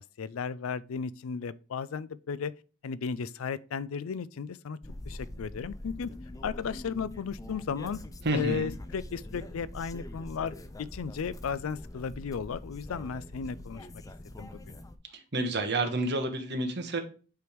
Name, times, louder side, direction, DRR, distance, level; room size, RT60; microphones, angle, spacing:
voice 1, 0.0-2.5 2.8-4.8 5.0-6.1 6.4-8.0 8.3-13.9 14.4-14.8, left 6 dB, 80° left, 0.4 m, -35 dB
sound 1, 4.8-15.0, left 1 dB, 15° left, 0.5 m, -44 dB
voice 2, 8.2-8.7 15.3-17.0, right 2 dB, 55° right, 1.3 m, -29 dB
8.0 x 3.5 x 4.6 m
head